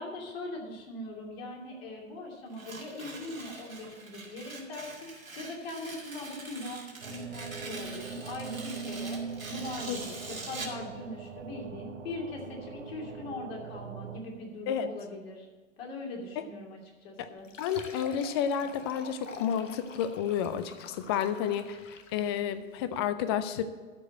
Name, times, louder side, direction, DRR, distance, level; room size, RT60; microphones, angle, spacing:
voice 1, 0.0-15.4 15.8-17.5, left 2 dB, 45° left, 0 dB, 2.8 m, -41 dB
Tearing, 2.5-10.8, right 3 dB, 80° right, 2.2 m, -44 dB
sound 1, 7.0-14.2, right 6 dB, 60° right, 1.3 m, -41 dB
Fill (with liquid), 17.4-22.5, left 5 dB, 65° left, 1.1 m, -47 dB
voice 2, 17.6-23.6, left 8 dB, 20° left, 12 dB, 0.4 m, -31 dB
13.0 x 4.9 x 7.6 m, 1.4 s
figure-of-eight pair, 105°, 40 cm